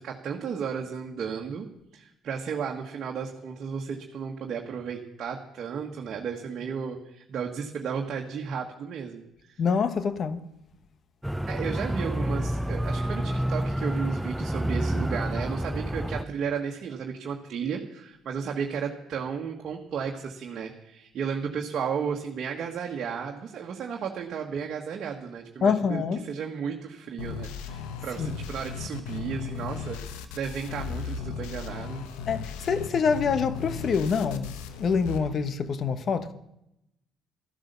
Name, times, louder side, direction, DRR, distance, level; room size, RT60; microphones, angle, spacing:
voice 1, 0.0-1.7 1.9-9.6 11.5-30.0 30.3-32.0, right 6 dB, 55° right, 1.5 m, -34 dB
voice 2, 9.6-10.4 25.6-26.3 28.2-28.3 32.3-36.3, left 5 dB, 55° left, 1.1 m, -26 dB
sound 1, 11.2-16.2, right 1 dB, 5° right, 0.5 m, -29 dB
sound 2, 27.2-35.2, left 6 dB, 85° left, 1.1 m, -36 dB
13.0 x 11.5 x 6.8 m
supercardioid pair, 70°, 0 cm